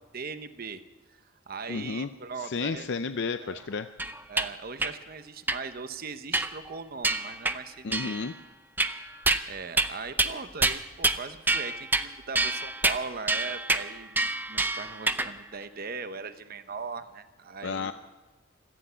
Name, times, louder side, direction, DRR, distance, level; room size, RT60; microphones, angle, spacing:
voice 1, 0.1-0.8 1.1-2.9 3.4-3.6 4.3-8.1 9.5-17.9, right 4 dB, 45° right, 10 dB, 0.8 m, -39 dB
voice 2, 1.7-2.1 2.4-3.9 7.8-8.3 17.6-17.9, left 4 dB, 60° left, 9 dB, 0.5 m, -32 dB
sound 1, 4.0-4.5 4.8-4.9 5.5-5.6 6.3-6.7 7.0-7.6 7.9-8.3 8.8-9.5 9.8-9.9 10.2-10.3 10.6-11.2 11.5-12.1 12.4-15.3, right 2 dB, 10° right, 0.5 m, -27 dB
17.5 x 13.5 x 5.7 m, 1.2 s
head